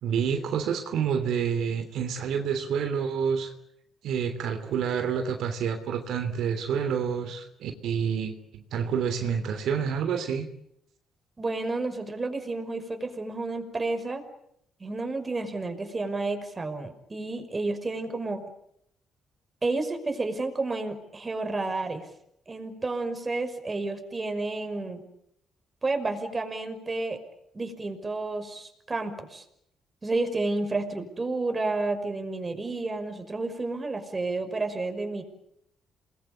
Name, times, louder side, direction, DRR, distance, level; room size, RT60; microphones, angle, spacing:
voice 1, 0.0-3.5 4.0-10.5, right 7 dB, 80° right, 7 dB, 3.2 m, -28 dB
voice 2, 11.4-14.2 14.8-18.5 19.6-22.1 22.5-25.0 25.8-27.2 27.5-29.4 30.0-35.2, right 3 dB, 25° right, 7 dB, 5.7 m, -31 dB
28.5 x 21.5 x 8.7 m, 0.74 s
cardioid pair, 90°, 0 cm